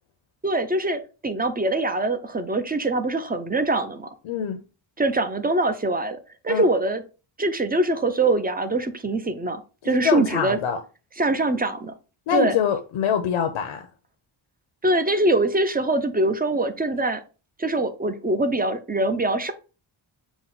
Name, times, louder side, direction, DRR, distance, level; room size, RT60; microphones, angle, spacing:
voice 1, 0.4-4.1 5.0-7.0 7.4-10.6 11.2-11.9 12.3-12.6 14.8-17.2 17.6-19.5, right 2 dB, 20° right, 0.4 m, -23 dB
voice 2, 4.2-4.6 6.5-6.7 9.8-10.8 12.3-13.9, left 8 dB, 80° left, 0.6 m, -24 dB
5.9 x 2.1 x 3.9 m
wide cardioid pair, 135°, 49 cm